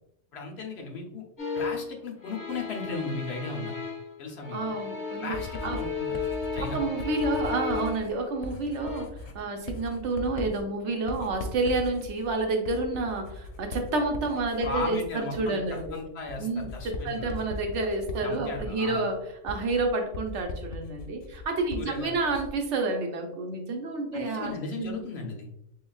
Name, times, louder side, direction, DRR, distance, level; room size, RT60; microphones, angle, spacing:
voice 1, 0.3-1.2 1.5-3.8 4.2-4.7 5.2-6.2 6.5-6.8 14.6-17.4 18.2-19.0 21.7-22.1 24.1-25.5, left 3 dB, 65° left, 1 dB, 1.0 m, -36 dB
sound 1, 1.4-1.9 2.2-4.1 4.4-8.2 8.7-9.0, left 4 dB, 15° left, 1.5 m, -34 dB
voice 2, 4.5-5.4 5.6-5.8 6.7-9.1 9.3-16.0 16.4-25.0, right 3 dB, 75° right, 3 dB, 1.0 m, -29 dB
Writing, 5.3-22.7, left 3 dB, 90° left, 1.0 m, -40 dB
6.6 x 2.4 x 2.3 m, 0.82 s
omnidirectional pair, 1.2 m